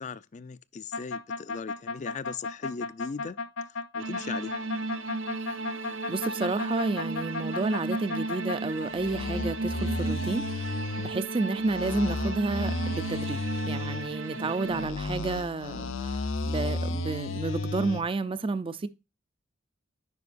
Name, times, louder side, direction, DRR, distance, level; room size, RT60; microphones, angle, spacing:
voice 1, 0.0-3.4 3.7-4.5 14.3-14.5, left 5 dB, 40° left, 0.4 m, -39 dB
sound 1, 0.9-8.6 8.9-11.1 11.6-14.1 14.6-18.0, left 2 dB, 75° left, 0.7 m, -33 dB
sound 2, 4.0-14.9, right 2 dB, 80° right, 0.8 m, -34 dB
voice 2, 6.1-18.9, right 3 dB, 25° right, 0.4 m, -31 dB
9.6 x 5.1 x 2.5 m
head